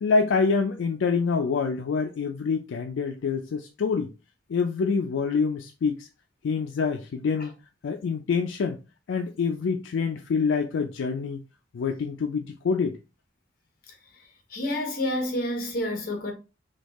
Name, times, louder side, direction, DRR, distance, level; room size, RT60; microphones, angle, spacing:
voice 1, 0.0-4.1 4.5-6.1 6.4-7.5 7.8-8.8 9.1-11.4 11.7-13.0, left 5 dB, 80° left, 0.3 m, -26 dB
voice 2, 14.5-16.3, left 1 dB, 50° left, 1.0 m, -28 dB
3.4 x 2.3 x 3.0 m
head